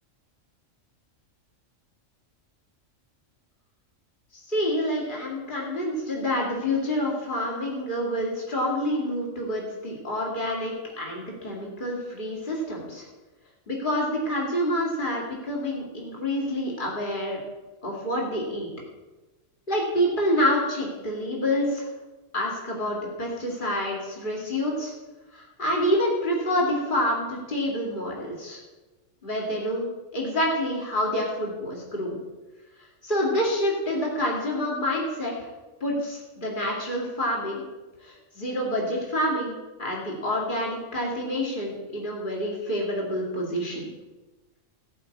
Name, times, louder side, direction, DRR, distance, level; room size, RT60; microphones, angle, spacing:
voice 1, 4.5-13.0 13.7-17.4 17.8-18.7 19.7-21.9 22.3-24.9 25.3-28.6 29.2-29.9 30.1-32.2 33.0-35.3 35.8-37.6 38.0-39.5 39.8-43.8, equal, 40° left, -2 dB, 2.7 m, -27 dB
14.0 x 5.8 x 8.3 m, 1.2 s
omnidirectional pair, 1.3 m